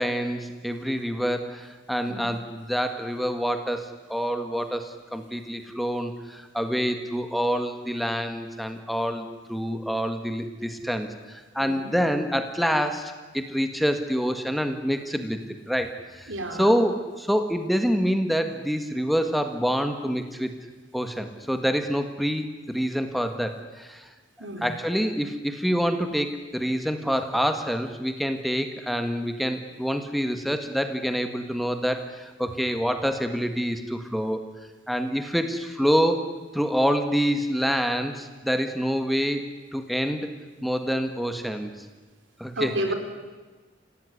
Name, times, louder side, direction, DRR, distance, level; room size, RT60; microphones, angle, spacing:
voice 1, 0.0-15.4 15.7-16.3 16.6-20.5 20.9-24.1 24.6-34.4 34.9-39.4 39.7-40.3 40.6-41.7 42.4-42.7, equal, ahead, 7 dB, 1.7 m, -26 dB
voice 2, 11.6-11.9 16.3-16.7 24.4-24.7 42.6-42.9, right 1 dB, 85° right, 5 dB, 4.1 m, -31 dB
27.0 x 17.0 x 9.9 m, 1.3 s
head